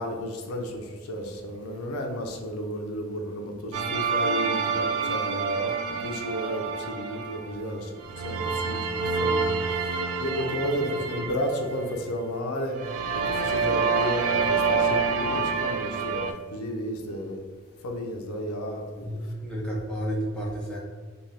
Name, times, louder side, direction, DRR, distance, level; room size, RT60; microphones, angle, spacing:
voice 1, 0.0-7.9 8.2-12.8 13.1-17.4 17.8-19.1, equal, 75° left, 2 dB, 0.5 m, -33 dB
sound 1, 3.7-7.6 8.0-12.1 12.7-16.3, right 4 dB, 80° right, 0.3 m, -27 dB
voice 2, 19.0-20.8, equal, 5° left, -5 dB, 0.4 m, -31 dB
2.5 x 2.3 x 3.3 m, 1.5 s
head